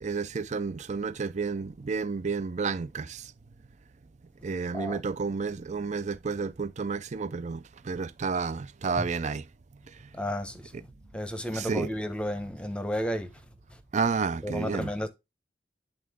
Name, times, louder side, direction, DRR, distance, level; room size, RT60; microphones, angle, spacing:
voice 1, 0.0-3.3 4.4-9.5 10.7-10.8 11.5-11.9 13.9-14.9, right 5 dB, 40° right, 0.5 m, -31 dB
voice 2, 10.1-10.9 11.1-13.3 14.4-15.1, equal, 5° left, 0.9 m, -32 dB
10.5 x 3.8 x 3.5 m
head